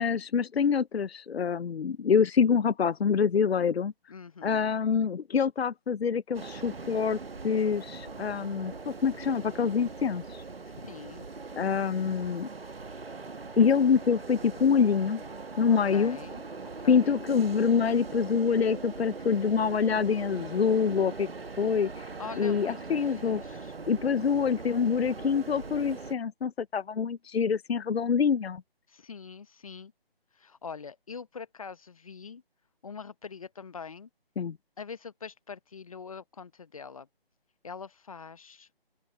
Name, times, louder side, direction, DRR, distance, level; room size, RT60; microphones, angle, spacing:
voice 1, 0.0-3.9 4.4-7.2 7.4-10.4 11.6-12.5 13.6-15.2 15.6-16.2 16.9-21.3 21.6-22.1 22.4-23.4 23.9-28.6 34.4-34.6, left 6 dB, 80° left, 0.5 m, -26 dB
voice 2, 4.1-4.8 10.8-11.3 15.9-16.4 16.8-17.3 22.2-23.7 28.9-29.9 30.3-32.4 32.8-34.1 34.8-37.1 37.6-38.9, left 5 dB, 35° left, 0.8 m, -43 dB
sound 1, 6.3-26.1, right 4 dB, 70° right, 1.5 m, -41 dB
sound 2, 16.9-24.0, right 17 dB, 20° right, 4.9 m, -64 dB
open air
figure-of-eight pair, 150°, 30 cm